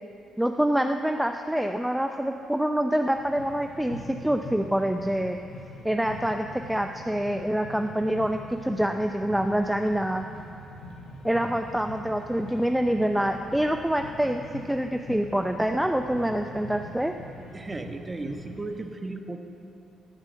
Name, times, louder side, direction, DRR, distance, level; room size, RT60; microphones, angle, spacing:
voice 1, 0.4-5.4 5.8-10.2 11.2-14.4 14.7-17.1, right 1 dB, 5° right, 5 dB, 0.5 m, -26 dB
sound 1, 3.1-18.8, left 1 dB, 80° left, 2.5 m, -43 dB
voice 2, 17.5-19.4, right 2 dB, 20° right, 6 dB, 1.1 m, -35 dB
13.5 x 7.4 x 8.5 m, 2.9 s
cardioid pair, 90°, 0 cm